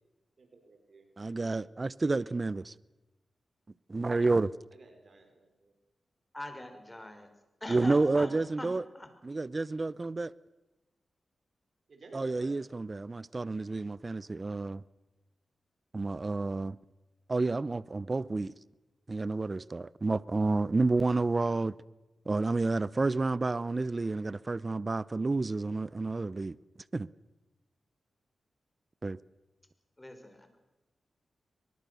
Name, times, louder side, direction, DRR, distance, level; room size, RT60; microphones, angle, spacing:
voice 1, 0.4-1.1 4.7-5.7 11.9-12.6, right 3 dB, 60° right, 5.0 m, -54 dB
voice 2, 1.2-2.7 3.9-4.5 7.7-8.8 9.2-10.3 12.1-14.8 15.9-16.8 17.3-18.5 19.1-21.8 22.3-26.6 26.9-27.1 29.0-29.2, right 3 dB, 40° right, 0.7 m, -30 dB
voice 3, 6.3-7.3 7.6-9.1 30.0-30.5, left 1 dB, 20° left, 5.2 m, -42 dB
23.0 x 21.5 x 6.9 m
cardioid pair, 45°, 0 cm